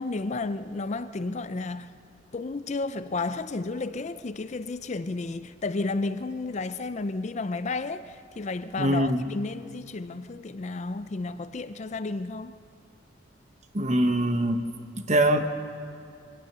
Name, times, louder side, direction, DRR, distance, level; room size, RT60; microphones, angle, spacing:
voice 1, 0.0-1.9 2.3-12.6, left 3 dB, 35° left, 0.5 m, -32 dB
voice 2, 8.8-9.2 13.7-14.6 15.0-15.5, right 1 dB, 35° right, 1.1 m, -23 dB
23.5 x 19.0 x 6.8 m
head